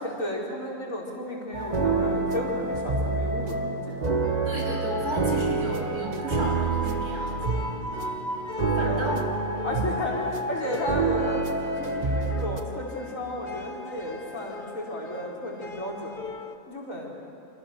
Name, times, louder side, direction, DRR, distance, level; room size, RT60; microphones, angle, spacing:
voice 1, 0.0-4.1 8.8-9.3 9.6-16.2 16.7-17.1, left 1 dB, 55° left, -3 dB, 5.0 m, -33 dB
sound 1, 1.5-12.6, right 3 dB, 30° right, 1.4 m, -27 dB
sound 2, 4.2-16.6, left 4 dB, 35° left, 1.1 m, -41 dB
voice 2, 4.4-7.7 8.7-9.3 9.7-10.0, equal, 70° right, -3 dB, 4.7 m, -34 dB
29.5 x 27.0 x 6.9 m, 2.9 s
omnidirectional pair, 1.6 m